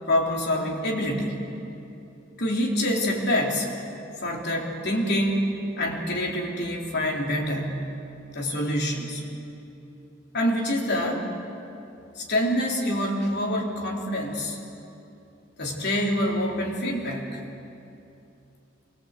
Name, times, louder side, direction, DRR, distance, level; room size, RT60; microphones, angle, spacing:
voice 1, 0.1-1.4 2.4-3.7 4.2-5.5 5.8-7.9 8.3-9.2 10.3-11.3 12.2-14.6 15.6-17.4, left 1 dB, 60° left, -1 dB, 3.5 m, -26 dB
24.0 x 19.0 x 8.1 m, 2.8 s
head